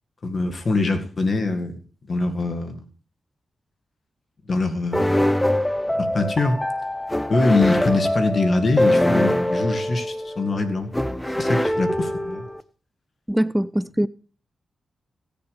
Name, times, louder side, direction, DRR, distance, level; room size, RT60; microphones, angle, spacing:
voice 1, 0.2-1.7 2.1-2.9 4.5-5.3 5.9-6.6 7.3-12.5, left 3 dB, 55° left, 1.8 m, -23 dB
sound 1, 4.9-12.6, left 1 dB, 10° left, 0.7 m, -23 dB
voice 2, 13.3-14.1, right 1 dB, 5° right, 0.4 m, -22 dB
17.0 x 7.0 x 3.4 m
supercardioid pair, 40°, 0 cm